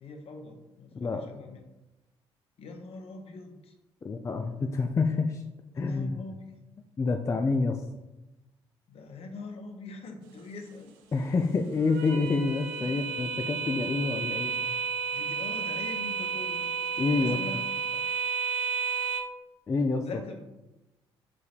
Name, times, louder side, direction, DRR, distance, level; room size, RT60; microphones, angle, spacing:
voice 1, 0.0-1.6 2.6-3.7 5.7-6.6 8.9-10.9 15.1-16.7 17.2-17.6 17.9-18.0 20.0-20.4, left 3 dB, 50° left, 4 dB, 0.7 m, -43 dB
voice 2, 4.0-5.4 5.8-6.2 7.0-7.8 11.1-14.8 17.0-17.4 19.7-20.1, left 4 dB, 25° left, 5 dB, 0.3 m, -28 dB
sound 1, 10.2-19.2, right 6 dB, 70° right, 0.5 m, -32 dB
4.7 x 3.8 x 2.4 m, 1.0 s
figure-of-eight pair, 45°, 13 cm